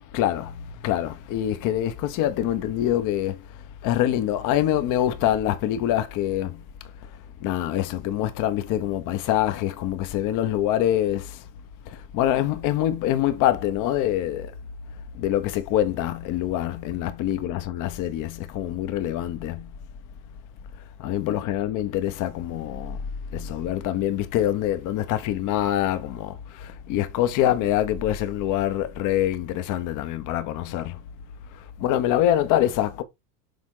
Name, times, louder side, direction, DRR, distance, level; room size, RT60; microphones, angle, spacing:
voice 1, 0.1-3.5 3.8-6.6 7.4-11.4 11.9-14.5 15.1-19.7 21.0-23.0 23.3-31.0 31.5-33.0, left 12 dB, 40° left, 1.0 m, -25 dB
7.0 x 3.6 x 3.7 m
supercardioid pair, 135°, 47 cm